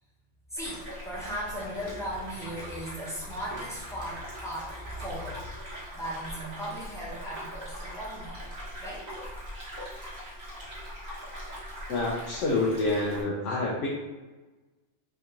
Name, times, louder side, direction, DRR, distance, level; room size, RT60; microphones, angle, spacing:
voice 1, 0.5-5.5 5.9-8.4 8.8-9.1, equal, 5° left, -6 dB, 0.7 m, -37 dB
sound 1, 0.5-13.2, equal, 35° right, 1.2 m, -41 dB
voice 2, 11.9-13.9, left 2 dB, 85° left, -4 dB, 1.0 m, -27 dB
3.4 x 2.4 x 2.8 m, 1.2 s
omnidirectional pair, 1.2 m